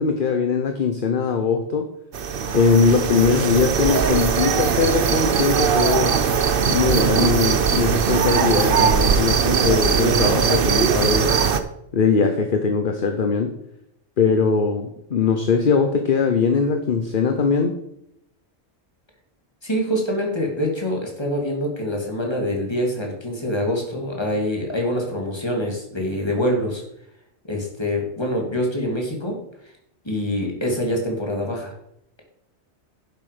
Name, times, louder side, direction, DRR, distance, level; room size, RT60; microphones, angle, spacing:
voice 1, 0.0-1.9 2.5-6.2 6.7-11.3 11.9-13.6 14.2-17.8, left 5 dB, 50° left, 6 dB, 1.1 m, -21 dB
sound 1, 2.1-11.6, right 6 dB, 55° right, 0.9 m, -20 dB
voice 2, 19.6-26.8 27.4-29.4 30.0-31.7, equal, 20° left, 0 dB, 2.5 m, -25 dB
10.5 x 7.5 x 5.1 m, 0.77 s
omnidirectional pair, 1.2 m